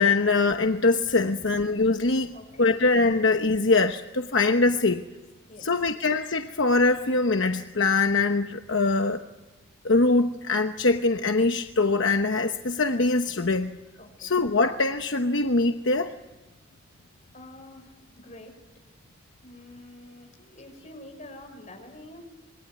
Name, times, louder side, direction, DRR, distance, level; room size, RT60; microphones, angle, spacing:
voice 1, 0.0-2.3 2.6-5.0 5.6-9.2 9.8-13.7 14.2-16.1, left 3 dB, 65° left, 6 dB, 1.1 m, -23 dB
voice 2, 2.3-2.8 5.5-5.7 14.0-14.3 17.3-18.5 19.4-22.2, left 1 dB, 35° left, 3 dB, 6.3 m, -47 dB
27.0 x 22.0 x 9.5 m, 1.1 s
head